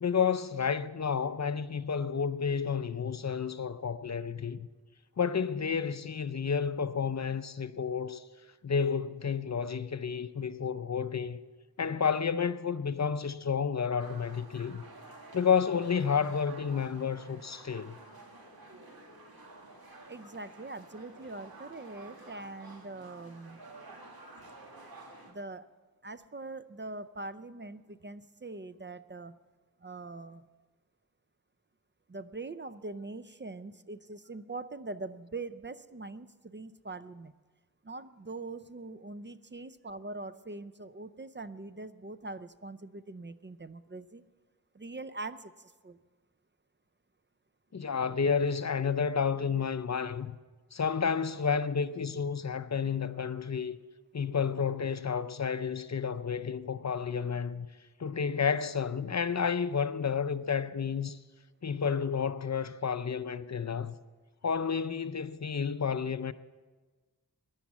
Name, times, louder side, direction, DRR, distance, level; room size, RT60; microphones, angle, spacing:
voice 1, 0.0-4.7 5.2-8.2 8.6-11.4 11.8-14.8 15.3-18.0 47.7-50.4 50.7-53.8 54.1-57.7 58.0-61.2 61.6-63.9 64.4-66.3, left 6 dB, 45° left, 0.6 m, -31 dB
sound 1, 14.0-25.3, right 2 dB, 75° right, 2.2 m, -51 dB
voice 2, 20.1-23.6 25.3-25.7 26.0-29.4 29.8-30.4 32.1-37.3 37.8-44.2 44.7-46.0, right 3 dB, 30° right, 0.5 m, -43 dB
16.0 x 10.5 x 7.2 m
wide cardioid pair, 60°, 37 cm